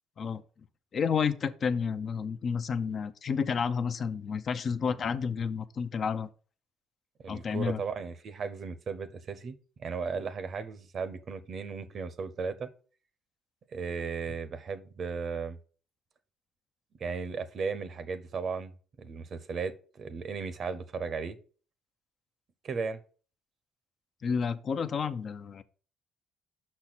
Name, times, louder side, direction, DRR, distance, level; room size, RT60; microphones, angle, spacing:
voice 1, 0.9-6.3 7.3-7.8 24.2-25.6, left 6 dB, 50° left, 0.5 m, -30 dB
voice 2, 7.2-12.7 13.7-15.6 17.0-21.4 22.6-23.0, right 5 dB, 55° right, 0.8 m, -36 dB
5.8 x 4.3 x 6.0 m
supercardioid pair, 75°, 0 cm